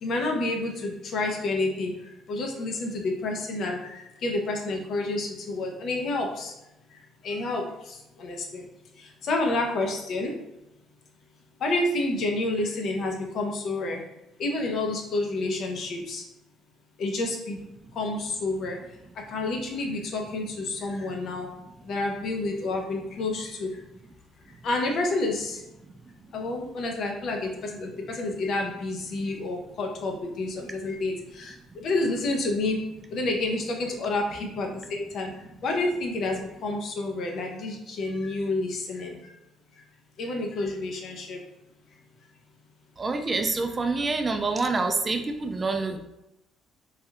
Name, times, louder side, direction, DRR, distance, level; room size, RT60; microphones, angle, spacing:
voice 1, 0.0-6.5 6.9-7.0 7.2-8.7 9.0-10.3 11.6-14.0 14.4-16.2 17.0-17.6 18.0-18.8 19.3-21.5 21.8-23.7 24.6-25.6 26.3-32.8 33.1-35.3 35.6-39.3 40.2-41.4, left 2 dB, 60° left, 2 dB, 0.6 m, -29 dB
voice 2, 43.0-46.0, right 3 dB, 30° right, 5 dB, 0.3 m, -27 dB
3.2 x 2.3 x 2.8 m, 0.91 s
supercardioid pair, 75°, 0 cm